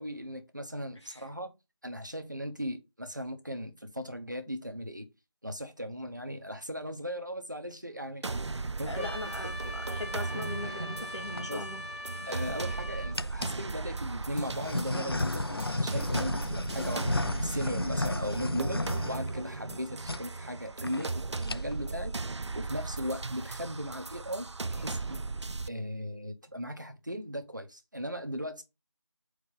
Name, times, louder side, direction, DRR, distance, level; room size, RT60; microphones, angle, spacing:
voice 1, 0.0-1.5 1.8-5.1 5.4-8.3 8.6-9.2 9.4-9.6 10.6-11.0 11.3-11.6 12.3-17.1 17.4-22.2 22.5-25.2 25.7-28.6, equal, 45° right, 1.2 m, -38 dB
sound 1, 8.2-25.7, right 3 dB, 80° right, 0.4 m, -37 dB
voice 2, 8.9-11.8, left 2 dB, 85° left, 3.0 m, -40 dB
Trumpet, 9.0-13.2, left 1 dB, 25° left, 1.5 m, -41 dB
sound 2, 11.0-11.4 12.2-12.7 13.2-13.6 14.3-19.8 20.0-20.2 20.5-20.6 20.8-21.1 21.4-21.9, left 2 dB, 60° left, 0.4 m, -33 dB
4.9 x 4.3 x 5.6 m
figure-of-eight pair, 180°, 15 cm